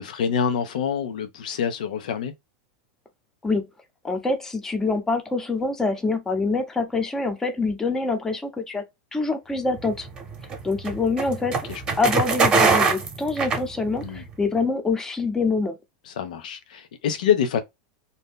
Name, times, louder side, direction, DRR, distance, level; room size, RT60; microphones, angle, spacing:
voice 1, 0.0-2.3 11.5-11.8 14.0-14.2 16.1-17.6, left 8 dB, 85° left, 0.5 m, -26 dB
voice 2, 4.0-8.8 9.1-10.1 10.6-11.7 12.0-15.8, left 3 dB, 10° left, 0.6 m, -25 dB
sound 1, 9.8-14.2, right 4 dB, 20° right, 0.8 m, -23 dB
2.6 x 2.1 x 3.5 m
supercardioid pair, 140°, 4 cm